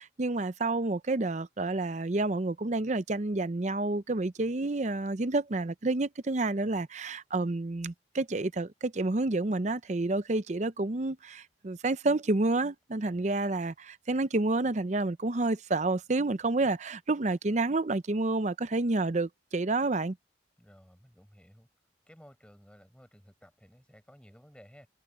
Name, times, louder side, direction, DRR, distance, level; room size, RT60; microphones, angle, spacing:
voice 1, 0.0-20.2, right 2 dB, 40° right, 0.6 m, -29 dB
voice 2, 13.1-13.4 20.6-21.7 22.1-24.9, equal, 5° left, 5.6 m, -56 dB
head